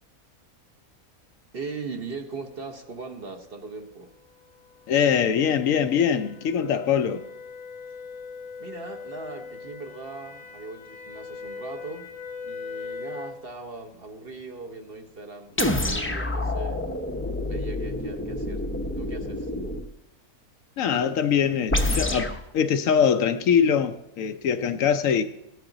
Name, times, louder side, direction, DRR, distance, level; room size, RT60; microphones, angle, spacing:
voice 1, 1.5-4.1 8.6-12.1 12.4-16.8 17.4-18.7 19.0-19.5, right 3 dB, 45° right, 1.0 m, -39 dB
sound 1, 3.5-13.5, left 4 dB, 90° left, 2.1 m, -41 dB
voice 2, 4.9-7.2 20.8-25.2, left 7 dB, 70° left, 0.9 m, -23 dB
sound 2, 15.6-19.9 21.7-22.4, left 1 dB, 15° left, 0.5 m, -27 dB
14.5 x 9.9 x 3.9 m
omnidirectional pair, 1.6 m